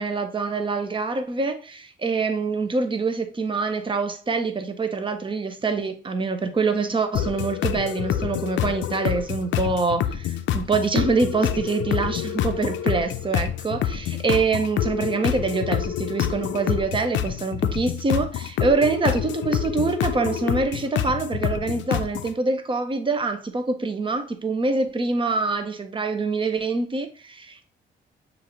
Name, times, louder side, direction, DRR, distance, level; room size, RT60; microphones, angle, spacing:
voice 1, 0.0-27.7, right 4 dB, 25° right, 0.7 m, -25 dB
sound 1, 7.1-22.3, left 10 dB, 70° left, 0.4 m, -27 dB
6.2 x 2.6 x 3.0 m
cardioid pair, 90°, 20 cm